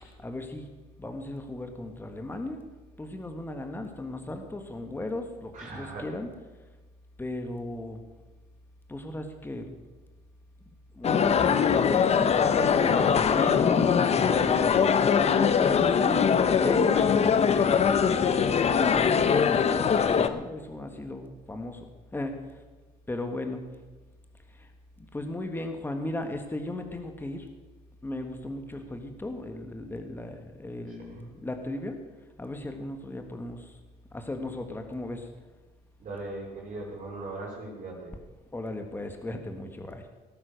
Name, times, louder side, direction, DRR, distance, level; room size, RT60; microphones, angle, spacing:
voice 1, 0.2-0.7 1.0-2.6 3.0-6.3 7.2-8.0 8.9-9.7 10.9-11.5 11.9-16.3 16.6-21.9 22.1-22.4 23.1-23.7 25.1-27.5 28.0-32.0 32.4-33.7 34.1-35.3 38.5-40.0, left 1 dB, 10° left, 5 dB, 1.6 m, -36 dB
voice 2, 5.5-6.1 14.0-14.5 30.9-31.3 36.0-38.2, right 2 dB, 50° right, -4 dB, 4.7 m, -39 dB
sound 1, 11.0-20.3, left 7 dB, 40° left, 0.9 m, -22 dB
17.5 x 9.6 x 6.6 m, 1.3 s
cardioid pair, 110°, 17 cm